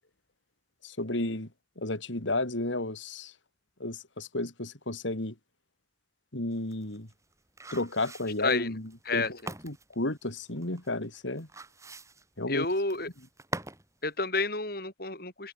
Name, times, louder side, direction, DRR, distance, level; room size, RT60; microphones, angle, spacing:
voice 1, 0.8-1.5 1.8-3.3 3.8-5.3 6.3-7.1 7.7-9.4 9.6-11.5 12.4-12.7, left 2 dB, 85° left, 3.4 m, -32 dB
sound 1, 6.5-13.9 14.2-14.3, right 2 dB, 15° right, 7.1 m, -44 dB
voice 2, 8.4-8.7 9.1-9.3 12.5-13.1 14.0-15.5, left 3 dB, 50° left, 7.7 m, -30 dB
head